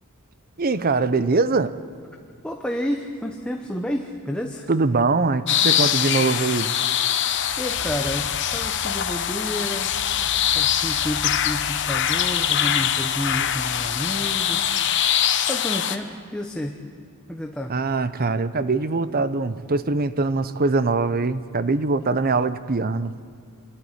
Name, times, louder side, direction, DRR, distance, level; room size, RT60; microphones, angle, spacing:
voice 1, 0.6-1.7 4.7-6.7 17.7-23.1, right 3 dB, 40° right, 14 dB, 0.7 m, -22 dB
voice 2, 2.4-4.7 7.6-9.9 10.5-14.8 15.5-16.8 17.3-17.7, equal, 5° left, 2 dB, 1.0 m, -30 dB
sound 1, 5.5-16.0, left 9 dB, 55° left, 1.0 m, -23 dB
sound 2, 6.6-15.5, right 1 dB, 20° right, 4.3 m, -42 dB
25.5 x 12.0 x 9.8 m, 2.3 s
head